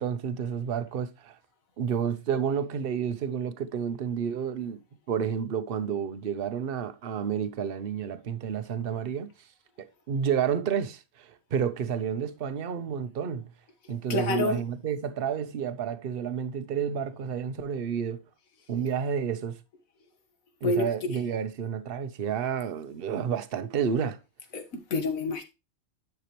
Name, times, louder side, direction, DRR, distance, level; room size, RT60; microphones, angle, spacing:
voice 1, 0.0-1.4 1.8-4.8 5.1-9.3 9.8-13.4 13.9-18.2 18.7-19.6 20.6-24.2, right 7 dB, 50° right, 0.9 m, -30 dB
voice 2, 14.1-14.6 20.6-20.9 24.5-25.4, left 2 dB, 85° left, 1.8 m, -27 dB
10.0 x 6.0 x 3.0 m
omnidirectional pair, 1.4 m